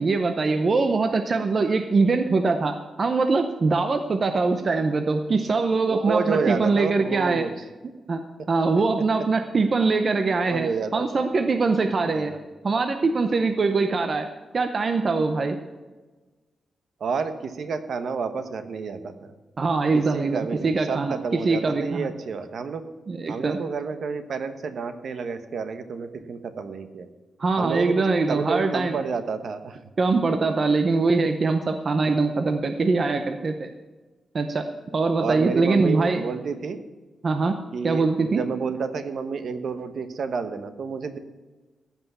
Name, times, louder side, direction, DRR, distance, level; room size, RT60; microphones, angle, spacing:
voice 1, 0.0-7.4 8.1-8.2 8.5-12.3 12.6-14.3 14.5-15.6 19.6-21.2 21.4-22.1 23.1-23.6 27.4-29.0 30.0-33.7 34.3-36.3 37.2-37.6 37.8-38.4, right 3 dB, 35° right, 7 dB, 0.7 m, -23 dB
voice 2, 5.9-7.5 10.4-11.3 12.1-12.4 17.0-19.3 19.9-22.8 23.3-27.1 27.6-29.8 35.2-36.8 37.7-41.2, right 5 dB, 60° right, 9 dB, 1.0 m, -30 dB
15.0 x 5.8 x 8.3 m, 1.2 s
wide cardioid pair, 165°, 0 cm